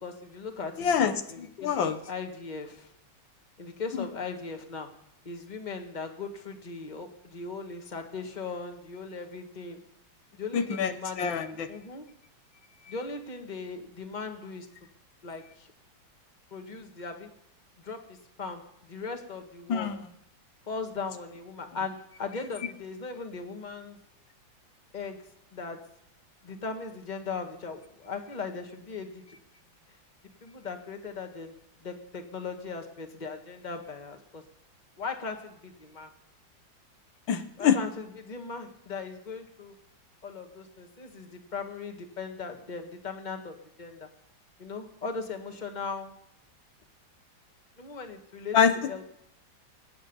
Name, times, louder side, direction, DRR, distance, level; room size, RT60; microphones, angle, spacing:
voice 1, 0.0-2.9 3.6-4.9 5.2-9.8 10.4-11.3 11.7-12.1 12.9-14.7 15.2-15.7 16.5-17.3 17.8-18.6 18.9-19.9 20.7-24.0 24.9-25.2 25.5-25.8 26.4-29.2 30.4-34.4 35.0-36.1 37.6-39.7 40.2-44.1 44.6-46.1 47.8-48.6 48.9-49.1, left 4 dB, 25° left, 5 dB, 1.7 m, -38 dB
voice 2, 0.8-1.1 1.4-2.0 3.9-4.0 10.5-11.7 19.7-20.0 37.3-37.8 48.5-48.7, left 7 dB, 75° left, 8 dB, 1.7 m, -25 dB
24.0 x 9.2 x 5.5 m, 0.78 s
omnidirectional pair, 2.1 m